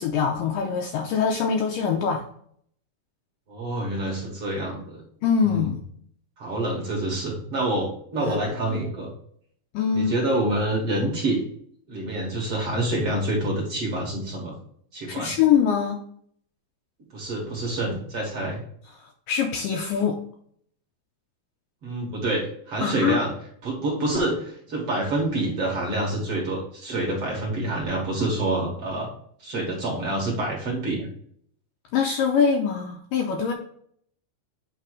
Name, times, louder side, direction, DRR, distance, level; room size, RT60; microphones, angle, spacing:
voice 1, 0.0-2.2 5.2-5.8 8.2-8.4 9.7-10.1 15.1-16.0 19.3-20.2 22.8-23.2 31.9-33.5, left 7 dB, 80° left, 2 dB, 2.0 m, -23 dB
voice 2, 3.5-5.0 5.4-5.7 6.4-9.1 9.9-11.4 11.9-14.5 14.9-15.3 17.1-18.6 21.8-23.3 23.6-29.1 29.4-31.1, right 1 dB, 50° right, -3 dB, 2.2 m, -27 dB
8.6 x 3.3 x 4.8 m, 0.63 s
omnidirectional pair, 4.5 m